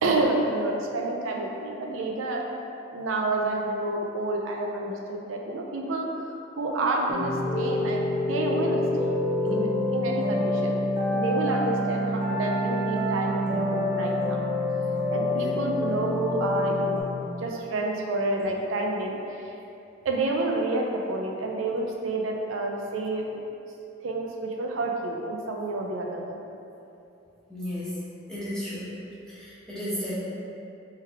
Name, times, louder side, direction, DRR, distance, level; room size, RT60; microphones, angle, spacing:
voice 1, 0.0-2.4 2.9-6.1 6.6-9.2 9.5-10.8 11.1-14.4 15.1-17.0 17.4-19.5 20.0-23.4 24.0-26.4, right 2 dB, 90° right, 0 dB, 0.4 m, -29 dB
sound 1, 7.1-17.0, left 1 dB, 25° right, 0.6 m, -27 dB
voice 2, 27.5-27.9 28.3-28.9 29.3-30.1, equal, 5° left, -12 dB, 1.0 m, -34 dB
3.3 x 3.2 x 3.4 m, 2.8 s
head